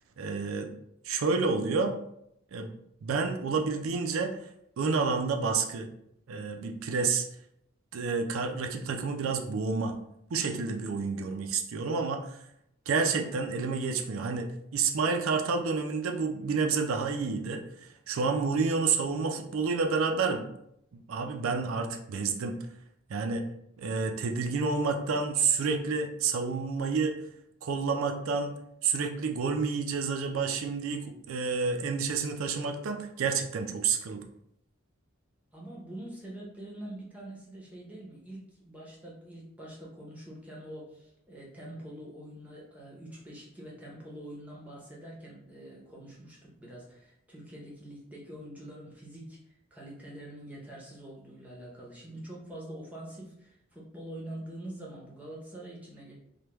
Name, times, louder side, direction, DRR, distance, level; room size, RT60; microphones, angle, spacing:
voice 1, 0.2-0.7 1.0-2.0 2.5-2.7 3.0-4.3 4.8-5.9 6.3-7.3 7.9-9.9 10.3-12.4 12.9-20.5 20.9-22.6 23.1-23.4 23.8-27.1 27.6-28.6 28.8-34.2, right 4 dB, 70° right, 4 dB, 0.4 m, -29 dB
voice 2, 35.5-56.1, right 1 dB, 5° right, -4 dB, 0.7 m, -45 dB
3.3 x 2.2 x 2.9 m, 0.76 s
head